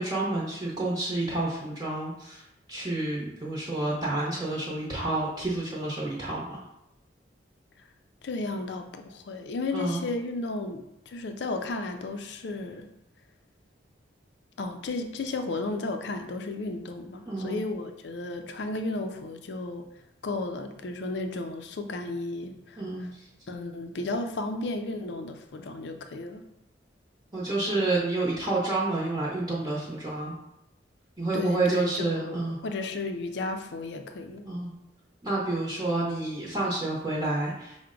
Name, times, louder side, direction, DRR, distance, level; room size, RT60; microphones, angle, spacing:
voice 1, 0.0-2.4 2.7-6.6 9.7-10.0 17.3-17.6 22.8-23.2 27.3-30.3 31.2-32.6 34.4-34.7 35.2-37.8, right 2 dB, 25° right, -6 dB, 0.8 m, -29 dB
voice 2, 8.2-12.9 14.6-19.8 20.2-23.1 23.5-26.4 31.3-34.5, left 2 dB, 70° left, 7 dB, 0.4 m, -34 dB
5.7 x 2.1 x 3.7 m, 0.83 s
head